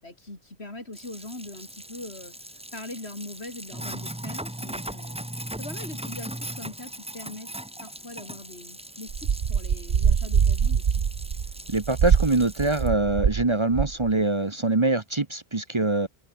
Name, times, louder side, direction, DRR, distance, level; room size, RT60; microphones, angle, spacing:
voice 1, 0.0-2.3 2.7-5.2 5.6-7.5 7.8-11.0, left 2 dB, 90° left, 5.2 m, -41 dB
Sink (filling or washing), 0.9-12.9, right 1 dB, 5° right, 1.0 m, -39 dB
sound 1, 9.1-13.5 13.7-14.1, right 7 dB, 70° right, 1.3 m, -23 dB
voice 2, 11.7-16.1, right 2 dB, 30° right, 1.1 m, -24 dB
omnidirectional pair, 1.1 m